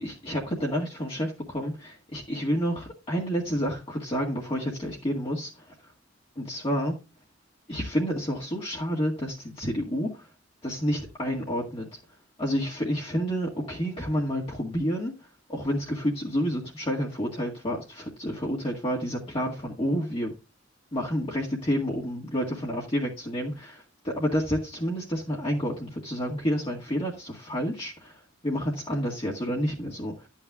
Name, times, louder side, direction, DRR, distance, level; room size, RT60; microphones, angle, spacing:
voice 1, 0.0-5.5 5.8-5.9 6.4-6.9 7.7-10.3 10.6-11.9 12.4-20.3 20.9-30.3, equal, 30° left, 1.9 m, -29 dB
12.5 x 8.9 x 2.4 m
head